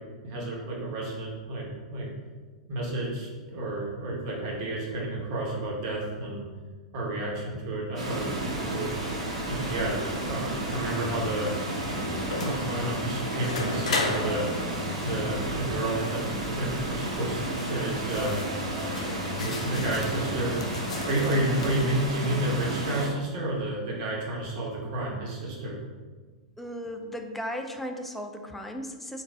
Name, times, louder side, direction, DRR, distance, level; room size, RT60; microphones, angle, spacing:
voice 1, 0.2-2.1 2.7-6.5 6.9-8.9 9.5-11.5 12.3-14.5 15.0-18.4 19.4-20.6 21.1-25.8, right 1 dB, 45° right, -3 dB, 1.2 m, -31 dB
Water, 8.0-23.1, right 1 dB, 65° right, 1.0 m, -32 dB
sound 1, 10.6-21.1, left 2 dB, 15° right, 1.3 m, -41 dB
sound 2, 11.7-21.9, left 3 dB, 65° left, 0.5 m, -37 dB
voice 2, 26.6-29.2, equal, 5° left, 4 dB, 0.4 m, -36 dB
3.8 x 2.5 x 3.5 m, 1.4 s
figure-of-eight pair, 100°, 4 cm